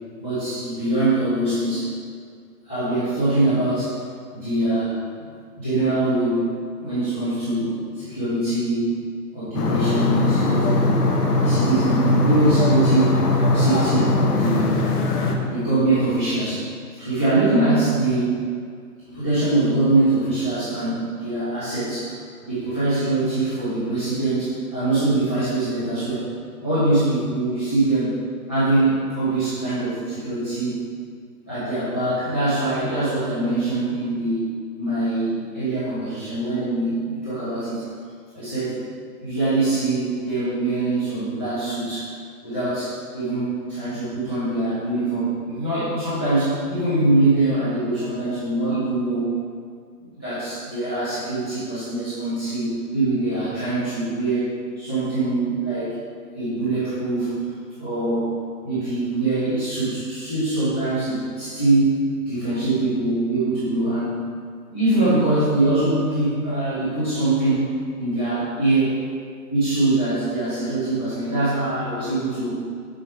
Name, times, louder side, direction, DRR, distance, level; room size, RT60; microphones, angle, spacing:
voice 1, 0.2-1.9 2.6-3.9 4.3-5.0 5.6-6.5 6.8-8.9 9.3-13.2 13.5-14.7 15.2-16.7 17.0-18.5 19.1-22.1 22.4-26.3 26.6-28.2 28.5-30.8 31.5-34.4 34.8-37.8 38.3-38.8 39.2-42.1 42.4-49.3 50.2-54.5 54.7-55.9 56.3-57.4 57.8-58.4 58.6-61.9 62.2-64.2 64.7-67.7 68.0-69.0 69.5-72.6, right 2 dB, 10° left, -16 dB, 0.5 m, -23 dB
sound 1, 9.5-15.3, left 2 dB, 70° left, 1.2 m, -20 dB
7.5 x 4.6 x 5.1 m, 2.1 s
hypercardioid pair, 170°, 48 cm